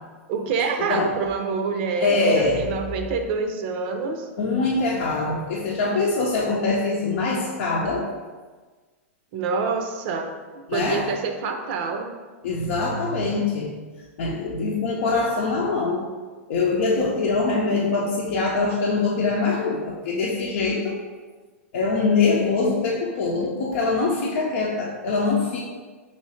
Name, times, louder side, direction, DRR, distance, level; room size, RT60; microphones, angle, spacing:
voice 1, 0.3-4.3 9.3-10.3 10.7-12.1, right 4 dB, 55° right, 5 dB, 0.5 m, -26 dB
voice 2, 2.0-2.7 4.4-8.1 10.7-11.1 12.4-13.8 14.2-16.1 16.5-21.0 21.7-25.6, left 3 dB, 65° left, -4 dB, 0.6 m, -23 dB
3.1 x 3.0 x 4.3 m, 1.4 s
hypercardioid pair, 120°, 8 cm